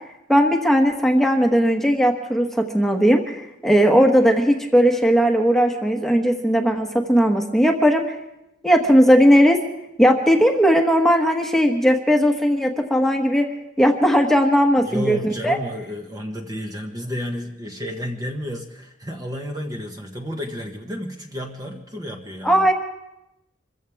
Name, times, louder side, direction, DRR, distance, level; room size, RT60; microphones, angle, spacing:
voice 1, 0.3-8.0 8.6-9.6 10.0-13.5 13.8-15.6 22.4-22.7, equal, ahead, 2 dB, 1.3 m, -17 dB
voice 2, 14.8-22.7, equal, 20° right, 2 dB, 1.2 m, -31 dB
26.0 x 15.0 x 3.5 m, 0.88 s
head